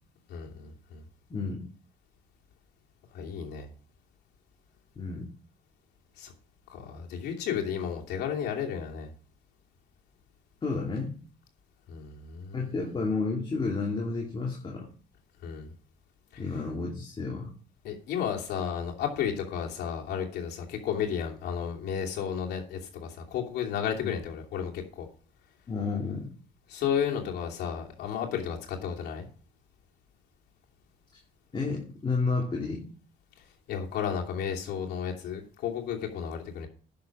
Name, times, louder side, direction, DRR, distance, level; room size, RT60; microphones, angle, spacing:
voice 1, 0.3-1.0 3.1-3.7 6.2-6.3 6.7-9.1 11.9-12.8 15.4-15.7 16.3-16.4 17.8-25.1 26.7-29.3 33.7-36.7, left 8 dB, 75° left, 0 dB, 2.7 m, -33 dB
voice 2, 1.3-1.6 5.0-5.3 10.6-11.1 12.5-14.9 16.4-17.5 24.0-24.1 25.7-26.3 31.5-32.8, left 4 dB, 30° left, -1 dB, 2.4 m, -31 dB
10.5 x 6.6 x 6.1 m, 0.42 s
cardioid pair, 110°, 17 cm